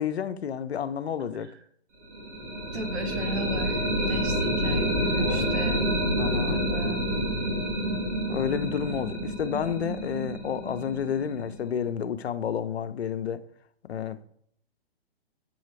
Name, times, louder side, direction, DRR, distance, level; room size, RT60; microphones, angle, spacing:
voice 1, 0.0-1.5 5.2-5.6 6.2-6.6 8.3-13.5 13.8-14.2, left 8 dB, 75° left, 0.7 m, -30 dB
sound 1, 2.1-11.9, equal, 35° right, 1.5 m, -28 dB
voice 2, 2.7-5.9 6.5-7.1, right 1 dB, 85° right, 1.2 m, -36 dB
7.7 x 3.9 x 3.2 m
hypercardioid pair, 140°, 32 cm